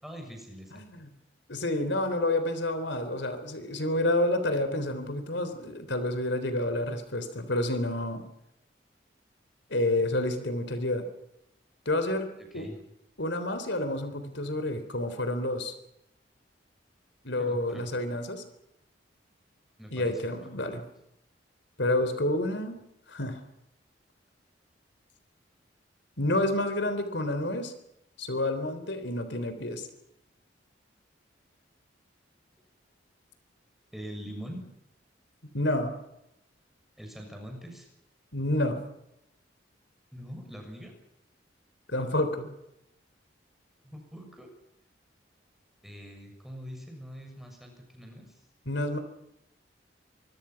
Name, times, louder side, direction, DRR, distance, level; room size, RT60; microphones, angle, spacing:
voice 1, 0.0-0.9 12.4-12.8 17.4-17.9 19.8-20.2 33.9-34.6 37.0-37.9 40.1-40.9 43.8-44.5 45.8-48.4, equal, ahead, 2 dB, 6.7 m, -43 dB
voice 2, 0.7-1.1 1.5-8.2 9.7-11.0 11.9-12.3 12.5-12.7 13.2-15.7 17.2-18.4 19.9-20.8 21.8-22.8 23.1-23.4 26.2-27.7 28.2-29.9 35.5-36.0 38.3-38.8 41.9-42.5 48.7-49.0, left 1 dB, 70° left, 9 dB, 3.7 m, -29 dB
25.5 x 24.0 x 6.0 m, 0.83 s
head